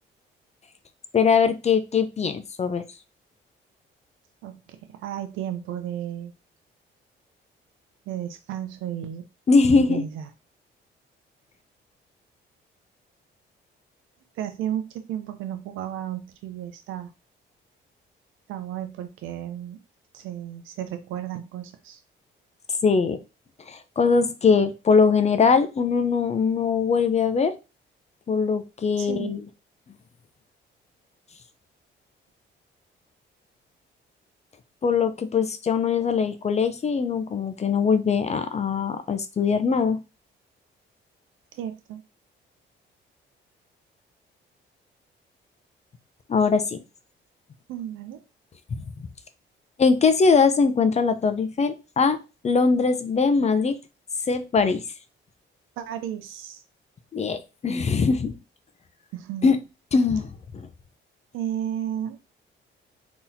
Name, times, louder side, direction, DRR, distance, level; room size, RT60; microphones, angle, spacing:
voice 1, 1.1-2.8 9.5-10.0 22.8-23.2 23.7-27.5 28.3-29.4 34.8-40.0 46.3-46.8 49.8-52.2 52.4-53.8 54.3-54.8 57.1-58.3 59.4-59.6 59.9-60.3 60.5-60.7, left 5 dB, 35° left, 10 dB, 0.5 m, -21 dB
voice 2, 4.4-6.3 8.1-9.3 9.7-10.3 14.4-17.1 18.5-19.8 20.1-22.0 29.0-29.4 41.5-42.0 47.7-48.2 55.8-56.6 59.1-59.5 61.3-62.2, right 10 dB, 90° right, 9 dB, 0.5 m, -33 dB
3.9 x 2.9 x 2.7 m, 0.29 s
cardioid pair, 90°, 20 cm